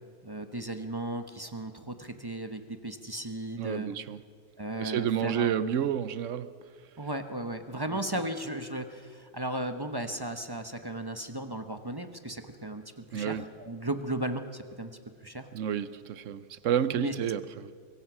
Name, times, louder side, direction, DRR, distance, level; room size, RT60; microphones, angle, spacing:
voice 1, 0.2-3.9 4.6-5.5 7.0-15.5 16.9-17.1, right 1 dB, 20° right, 0.6 m, -36 dB
voice 2, 3.6-4.2 4.8-6.6 13.1-13.4 15.5-17.7, right 9 dB, 75° right, 0.7 m, -30 dB
25.5 x 22.5 x 6.2 m
omnidirectional pair, 2.2 m